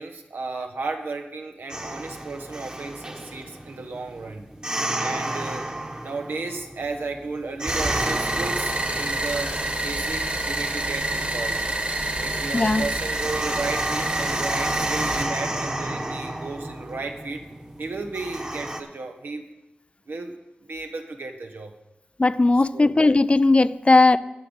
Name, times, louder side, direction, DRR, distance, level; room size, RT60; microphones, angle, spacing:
voice 1, 0.0-4.4 4.9-5.7 6.0-11.6 12.2-17.5 17.8-19.4 20.1-21.7 22.7-22.9, right 3 dB, 85° right, 4 dB, 1.2 m, -34 dB
sound 1, 1.7-18.8, right 1 dB, 25° right, 1.3 m, -32 dB
sound 2, 7.7-15.2, right 1 dB, 40° right, 1.9 m, -27 dB
voice 2, 12.5-12.9 22.2-24.2, left 2 dB, 35° left, 15 dB, 0.4 m, -17 dB
11.0 x 5.5 x 8.2 m, 0.97 s
cardioid pair, 45°, 3 cm